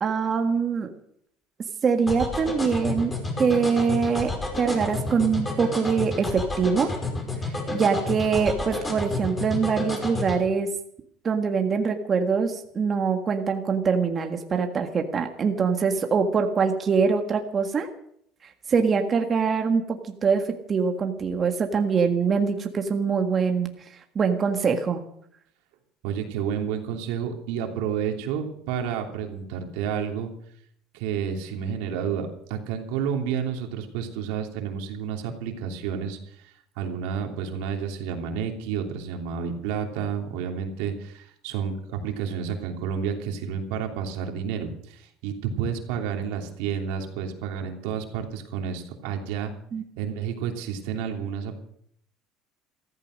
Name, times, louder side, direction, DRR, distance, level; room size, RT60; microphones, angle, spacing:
voice 1, 0.0-0.9 1.8-3.1 3.4-4.3 4.6-6.9 7.5-10.7 11.2-17.9 18.7-23.7 24.1-25.0 49.7-49.8, right 5 dB, 35° right, 5 dB, 1.6 m, -24 dB
sound 1, 2.1-10.4, left 2 dB, 20° left, 5.4 m, -30 dB
voice 2, 26.0-30.3 30.9-49.5 50.0-51.6, right 7 dB, 80° right, 3 dB, 3.0 m, -30 dB
14.5 x 14.5 x 6.5 m, 0.69 s
supercardioid pair, 110°, 0 cm